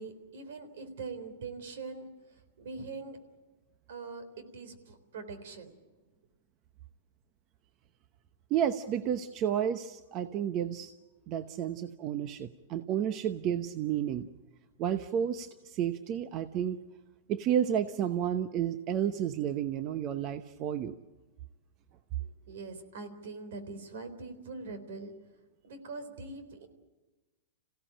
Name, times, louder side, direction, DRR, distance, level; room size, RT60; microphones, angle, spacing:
voice 1, 0.0-3.2 3.9-5.7 22.2-25.1 25.6-26.7, right 4 dB, 75° right, 10 dB, 3.9 m, -43 dB
voice 2, 8.5-10.9 11.3-14.3 14.8-16.8 17.3-21.0, right 9 dB, 35° right, 10 dB, 0.9 m, -31 dB
27.0 x 16.5 x 8.9 m, 1.2 s
hypercardioid pair, 145°, 0 cm